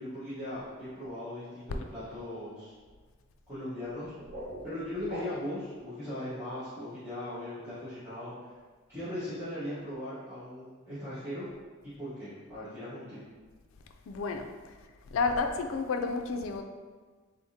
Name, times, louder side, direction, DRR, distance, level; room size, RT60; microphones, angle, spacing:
voice 1, 0.0-2.7 3.5-4.1 4.6-8.5 8.9-11.5 12.0-13.2, left 1 dB, 15° right, -16 dB, 1.2 m, -39 dB
sound 1, 3.8-5.7, equal, 45° right, 1.3 m, -43 dB
voice 2, 14.1-14.5 15.1-16.6, left 4 dB, 80° left, 6 dB, 0.4 m, -30 dB
3.8 x 3.5 x 2.8 m, 1.4 s
head